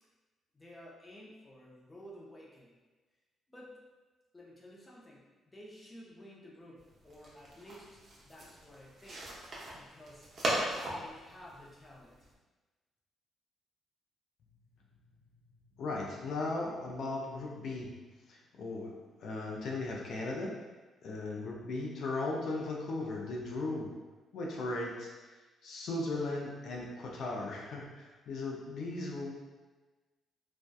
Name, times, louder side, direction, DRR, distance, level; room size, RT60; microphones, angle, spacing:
voice 1, 0.5-2.8 3.5-3.8 4.3-9.3 9.7-10.3 10.8-12.3, equal, 20° left, -4 dB, 0.5 m, -53 dB
sound 1, 6.8-12.3, right 1 dB, 45° right, 0.6 m, -39 dB
voice 2, 15.8-17.9 18.3-18.9 19.2-20.5 21.0-23.9 24.3-25.1 25.6-29.3, left 2 dB, 70° left, -2 dB, 0.4 m, -37 dB
2.6 x 2.2 x 2.2 m, 1.2 s
cardioid pair, 90°, 0 cm